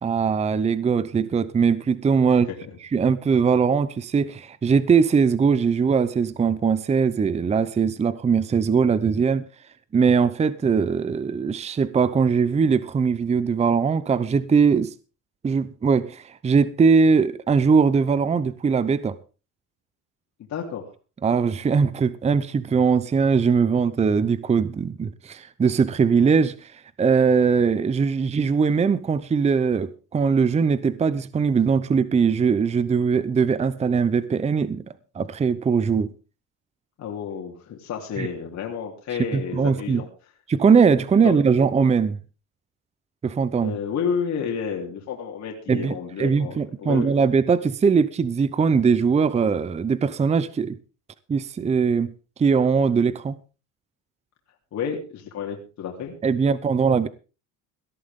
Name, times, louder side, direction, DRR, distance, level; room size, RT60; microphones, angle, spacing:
voice 1, 0.0-2.5 2.9-9.4 9.9-14.9 15.4-19.1 21.2-34.8 35.1-36.1 38.2-38.3 39.3-40.0 40.5-42.2 43.2-43.8 45.7-50.8 51.3-52.1 52.4-53.4 56.2-57.1, right 5 dB, 20° right, 0.7 m, -21 dB
voice 2, 2.3-2.8 20.5-20.8 37.0-40.1 41.2-41.3 43.6-47.1 54.7-56.1, left 7 dB, 50° left, 3.2 m, -31 dB
18.0 x 12.5 x 3.7 m
cardioid pair, 120°, 35 cm